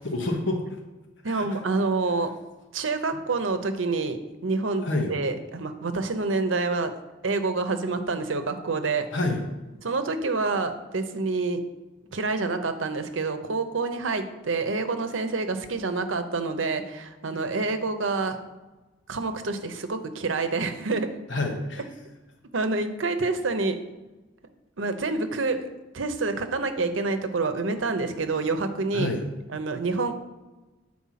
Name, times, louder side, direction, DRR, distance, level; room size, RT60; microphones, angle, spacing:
voice 1, 0.0-0.6 1.2-1.6 4.8-5.1 9.1-9.4 21.3-21.8 28.9-29.2, left 2 dB, 70° left, 3 dB, 1.1 m, -28 dB
voice 2, 1.2-2.3 2.7-6.9 7.2-9.1 9.8-11.6 12.1-18.4 19.1-21.1 22.5-23.8 24.8-25.7 25.9-29.1 29.5-30.2, right 3 dB, 85° right, 8 dB, 0.8 m, -27 dB
8.5 x 4.5 x 5.8 m, 1.1 s
head